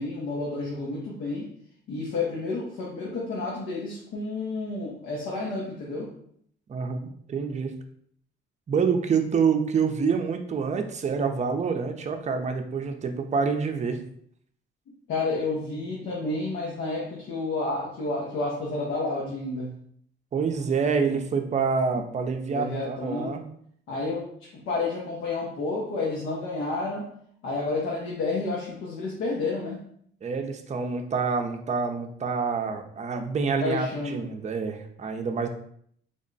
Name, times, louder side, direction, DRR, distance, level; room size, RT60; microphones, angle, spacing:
voice 1, 0.0-1.5 1.9-6.1 15.1-19.7 22.5-23.4 23.9-27.1 27.4-29.8 33.6-34.2, left 3 dB, 80° left, -3 dB, 0.8 m, -30 dB
voice 2, 6.7-7.7 8.7-14.0 20.3-23.5 30.2-35.5, right 5 dB, 35° right, 5 dB, 0.5 m, -27 dB
3.5 x 2.1 x 3.9 m, 0.65 s
cardioid pair, 90°, 20 cm